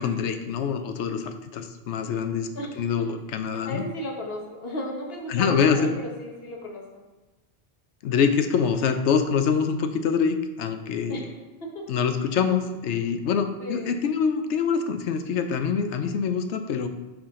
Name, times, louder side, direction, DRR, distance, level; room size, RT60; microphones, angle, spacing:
voice 1, 0.0-2.5 2.8-3.8 5.3-5.9 8.0-11.1 11.9-16.9, left 6 dB, 85° left, 8 dB, 0.9 m, -25 dB
voice 2, 2.5-3.1 3.5-7.0 11.1-11.3 11.6-11.8 13.6-14.0, left 1 dB, 60° left, 0 dB, 1.4 m, -35 dB
5.8 x 4.8 x 3.7 m, 1.2 s
omnidirectional pair, 1.2 m